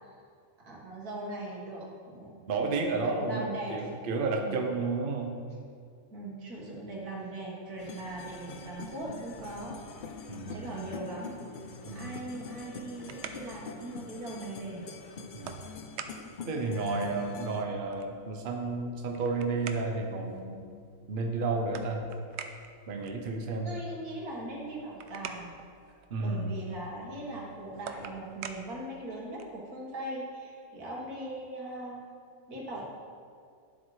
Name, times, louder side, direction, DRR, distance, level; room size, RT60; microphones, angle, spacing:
voice 1, 0.6-2.3 3.1-3.7 4.4-4.6 6.1-9.8 10.5-11.3 11.9-14.9 23.6-25.6 26.2-32.0 32.5-32.9, right 1 dB, 90° right, -3 dB, 2.2 m, -40 dB
voice 2, 2.5-5.4 10.3-10.7 11.8-12.2 15.3-15.6 16.5-20.6 21.1-22.0 22.9-23.7 26.1-26.5, right 3 dB, 45° right, 3 dB, 0.8 m, -32 dB
sound 1, 7.8-17.6, left 4 dB, 70° left, 0.4 m, -44 dB
sound 2, 12.9-29.7, right 6 dB, 65° right, 0.7 m, -48 dB
11.0 x 7.7 x 3.2 m, 2.2 s
omnidirectional pair, 1.6 m